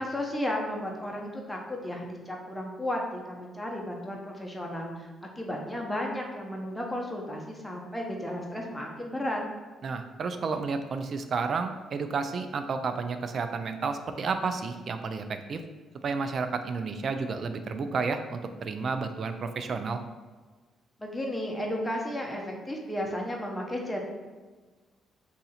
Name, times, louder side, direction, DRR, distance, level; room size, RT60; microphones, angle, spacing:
voice 1, 0.0-5.1 5.4-9.4 21.0-24.0, left 1 dB, 5° left, -1 dB, 0.7 m, -33 dB
voice 2, 9.8-15.6 16.0-20.0, right 4 dB, 50° right, 8 dB, 0.3 m, -31 dB
2.7 x 2.4 x 4.1 m, 1.3 s
cardioid pair, 90°, 0 cm